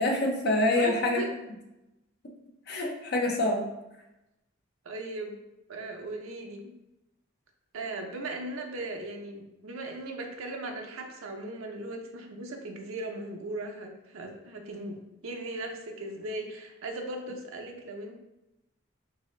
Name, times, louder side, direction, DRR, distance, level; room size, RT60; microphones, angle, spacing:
voice 1, 0.0-1.2 2.7-3.6, left 2 dB, 50° left, 0 dB, 0.6 m, -26 dB
voice 2, 0.7-1.5 4.8-5.4 5.7-6.7 7.7-15.0 15.2-18.2, right 2 dB, 75° right, 2 dB, 0.5 m, -38 dB
3.9 x 2.7 x 3.1 m, 0.93 s
head